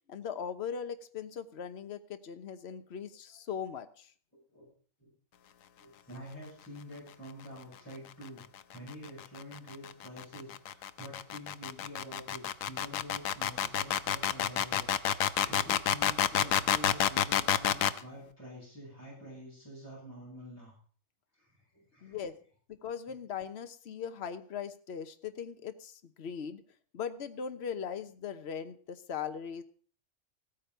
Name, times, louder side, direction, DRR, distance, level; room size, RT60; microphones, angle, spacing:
voice 1, 0.1-4.1 22.0-22.3 22.7-26.6 26.9-29.6, left 7 dB, 55° left, 9 dB, 1.2 m, -39 dB
voice 2, 5.8-8.4 8.7-20.7 21.3-22.2, equal, 10° left, -9 dB, 8.1 m, -47 dB
sound 1, 8.7-18.0, left 10 dB, 80° left, 1.2 m, -29 dB
15.5 x 9.3 x 5.6 m, 0.44 s
omnidirectional pair, 1.4 m